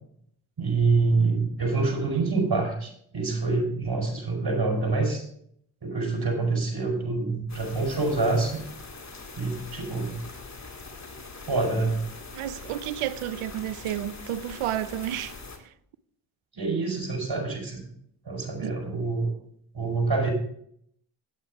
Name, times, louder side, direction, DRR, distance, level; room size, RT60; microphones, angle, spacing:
voice 1, 0.6-5.2 5.8-8.6 9.4-10.2 11.4-12.0 16.6-17.8 18.3-19.3 19.7-20.3, right 3 dB, 50° right, 5.1 m, -26 dB
sound 1, 7.5-15.6, left 3 dB, 35° left, 2.3 m, -42 dB
voice 2, 12.3-15.4 18.6-18.7, right 12 dB, 80° right, 0.7 m, -31 dB
9.3 x 8.7 x 4.8 m
supercardioid pair, 40°, 49 cm